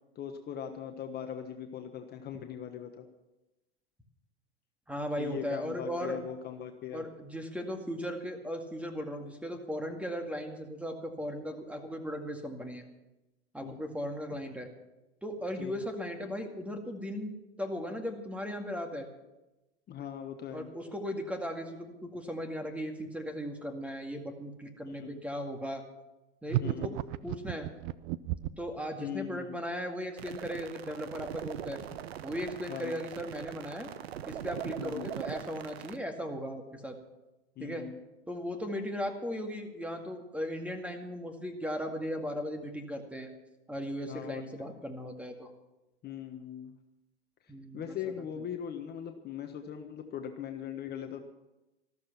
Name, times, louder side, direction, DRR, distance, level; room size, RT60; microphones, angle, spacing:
voice 1, 0.1-3.1 5.2-7.0 13.6-13.8 15.6-15.7 19.9-20.7 24.8-25.1 26.6-26.9 29.0-29.5 32.7-32.9 34.8-35.1 37.6-38.0 44.1-44.4 46.0-46.7 47.7-51.2, left 9 dB, 30° left, 5 dB, 1.3 m, -40 dB
voice 2, 4.9-6.2 6.9-12.8 13.5-14.7 15.2-19.1 20.5-25.8 26.4-26.9 27.2-27.7 28.6-31.8 32.2-33.9 34.3-37.0 37.6-37.9 38.3-43.3 43.7-45.5 47.5-48.1, equal, 5° right, 4 dB, 2.1 m, -37 dB
sound 1, 26.5-28.7, right 14 dB, 55° right, 0.6 m, -33 dB
sound 2, 30.2-36.0, right 10 dB, 75° right, 1.0 m, -41 dB
14.0 x 13.5 x 5.9 m, 1.0 s
hypercardioid pair, 95°, 31 cm